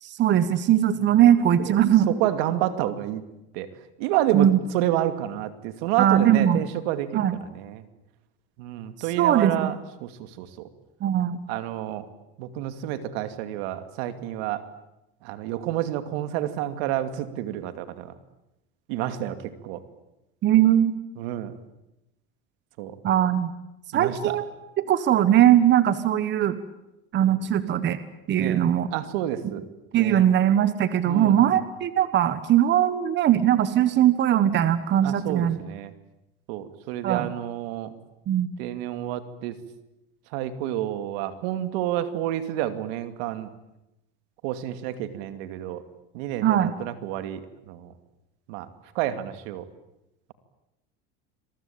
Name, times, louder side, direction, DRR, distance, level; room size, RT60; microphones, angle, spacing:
voice 1, 0.0-2.1 4.3-4.6 6.0-6.6 7.1-7.3 9.2-9.7 11.0-11.4 20.4-21.0 23.0-23.5 23.9-24.5 24.8-26.6 27.1-28.0 28.3-28.9 29.9-35.6 37.0-37.3 38.3-38.5 46.4-46.7, right 11 dB, 35° right, 13 dB, 1.5 m, -20 dB
voice 2, 2.1-3.2 3.5-3.7 4.0-4.5 4.7-7.3 7.5-7.8 8.6-9.8 10.0-10.7 11.5-12.0 12.4-14.6 15.2-18.1 18.9-19.8 21.2-21.5 22.8-23.0 23.9-24.2 27.2-27.4 28.4-28.6 28.9-29.6 29.9-30.2 31.0-31.6 35.0-35.9 36.5-37.9 38.6-39.6 40.3-43.5 44.4-45.8 46.1-47.9 48.5-48.7 48.9-49.7, right 13 dB, 75° right, 10 dB, 2.6 m, -29 dB
27.5 x 22.5 x 8.9 m, 0.91 s
supercardioid pair, 135°, 30 cm